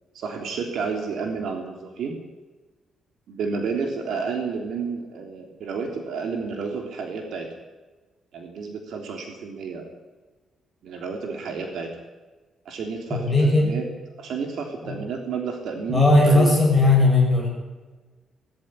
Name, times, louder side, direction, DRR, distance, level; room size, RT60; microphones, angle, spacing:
voice 1, 0.1-2.2 3.3-7.5 8.3-9.9 10.8-11.9 12.6-13.8 14.2-16.5, right 5 dB, 65° right, 3 dB, 3.3 m, -31 dB
voice 2, 13.1-13.8 14.8-14.9 15.9-17.5, left 2 dB, 10° right, 0 dB, 7.9 m, -17 dB
20.0 x 15.0 x 10.0 m, 1.3 s
cardioid pair, 165°, 0 cm